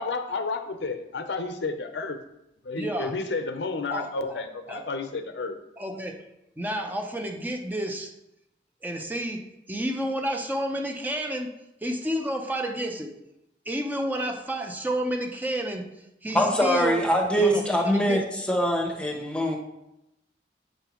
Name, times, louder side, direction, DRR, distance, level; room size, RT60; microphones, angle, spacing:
voice 1, 0.0-2.2 2.6-5.6, left 3 dB, 90° left, 8 dB, 0.7 m, -31 dB
voice 2, 2.8-3.2 3.9-4.4 4.7-4.8 5.8-6.2 6.6-8.1 8.8-9.4 9.7-11.5 11.8-13.1 13.7-17.0 17.4-18.3, right 1 dB, 10° right, 3 dB, 0.6 m, -30 dB
voice 3, 16.3-19.6, equal, 5° left, 2 dB, 0.9 m, -23 dB
7.8 x 5.4 x 3.0 m, 0.85 s
head